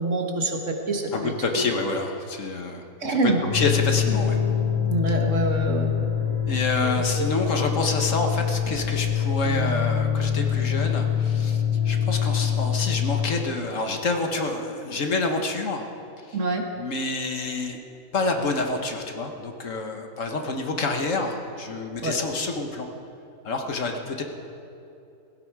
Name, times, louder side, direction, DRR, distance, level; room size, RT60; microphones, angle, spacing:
voice 1, 0.0-1.3 3.0-3.4 4.9-5.9 7.2-7.3 16.3-16.6 22.0-22.2, right 2 dB, 60° right, 2 dB, 1.8 m, -25 dB
voice 2, 1.1-4.4 6.5-15.9 16.3-16.4 16.7-17.8 18.1-22.9 23.4-24.2, left 3 dB, 60° left, 4 dB, 1.6 m, -28 dB
sound 1, 3.4-13.1, left 8 dB, 85° right, 3.6 m, -24 dB
16.5 x 16.0 x 4.7 m, 2.7 s
omnidirectional pair, 1.5 m